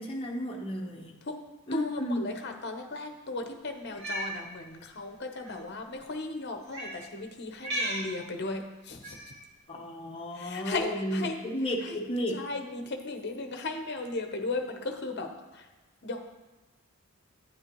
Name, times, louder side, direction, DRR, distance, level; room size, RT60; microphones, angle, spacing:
voice 1, 0.0-1.2 1.7-2.3 9.7-12.4, equal, 25° left, 0 dB, 1.1 m, -33 dB
voice 2, 1.7-9.3 10.4-11.4 11.9-12.0 12.3-15.7 16.0-16.2, left 2 dB, 50° left, 5 dB, 0.9 m, -36 dB
Cat, 3.8-4.3 5.4-5.5 6.7-7.0 7.6-8.1 9.0-9.4, right 1 dB, 50° right, 2.1 m, -34 dB
9.7 x 9.3 x 3.1 m, 1.1 s
head